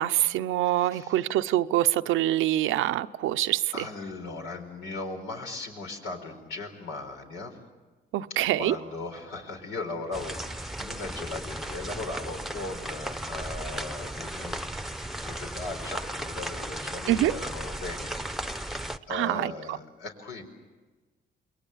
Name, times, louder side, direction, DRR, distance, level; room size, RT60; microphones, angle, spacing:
voice 1, 0.0-3.9 8.1-8.7 17.1-17.3 19.1-19.8, right 14 dB, 90° right, 12 dB, 0.7 m, -25 dB
voice 2, 0.8-1.2 3.7-7.6 8.6-14.8 15.2-20.4, left 3 dB, 90° left, 3 dB, 4.6 m, -38 dB
sound 1, 10.1-19.0, right 1 dB, ahead, 0.9 m, -35 dB
28.5 x 21.5 x 7.3 m, 1.3 s
cardioid pair, 90°, 20 cm